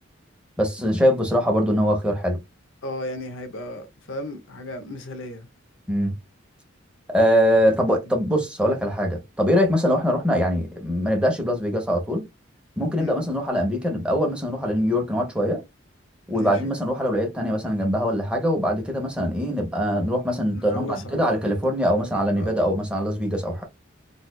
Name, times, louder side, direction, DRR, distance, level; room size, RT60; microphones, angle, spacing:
voice 1, 0.6-2.4 5.9-6.1 7.1-12.2 12.8-15.6 16.3-23.6, equal, 5° right, 0.9 m, -22 dB
voice 2, 2.8-5.5 13.0-13.1 16.3-16.7 20.5-21.5 22.3-22.6, left 1 dB, 75° left, 0.8 m, -35 dB
4.1 x 2.5 x 2.3 m
head